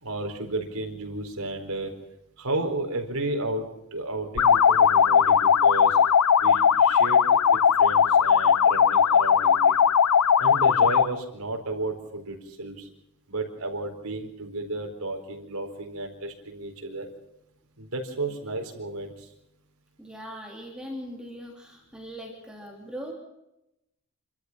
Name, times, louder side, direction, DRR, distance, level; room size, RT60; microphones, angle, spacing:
voice 1, 0.0-1.9 2.4-6.0 6.4-9.8 10.4-12.9 13.3-17.1 17.8-19.3, right 2 dB, 75° right, 3 dB, 4.3 m, -33 dB
sound 1, 4.4-11.2, left 7 dB, 85° left, 0.7 m, -19 dB
voice 2, 20.0-23.1, equal, 5° right, 0 dB, 3.2 m, -40 dB
27.5 x 13.0 x 7.3 m, 0.86 s
head